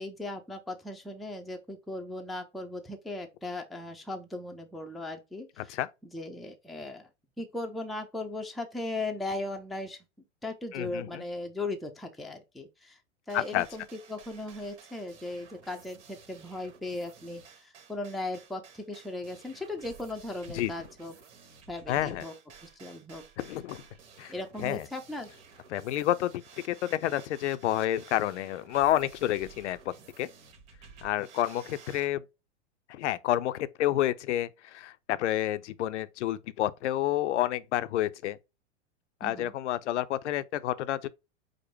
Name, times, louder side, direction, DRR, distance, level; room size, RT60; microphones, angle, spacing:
voice 1, 0.0-5.8 6.1-7.1 7.4-10.0 10.4-13.0 13.3-21.1 21.7-22.3 22.6-23.2 24.3-25.3 39.2-39.5, left 2 dB, ahead, 0.5 m, -37 dB
voice 2, 10.7-11.2 13.3-13.7 20.5-20.7 21.9-22.2 23.4-23.8 24.2-24.3 24.6-24.8 25.7-26.4 26.7-29.8 30.2-30.3 31.0-32.2 32.9-38.4 39.2-41.1, left 13 dB, 75° left, 0.6 m, -29 dB
sound 1, 13.3-32.1, right 6 dB, 70° right, 1.4 m, -53 dB
5.0 x 2.1 x 4.4 m
hypercardioid pair, 115°, 36 cm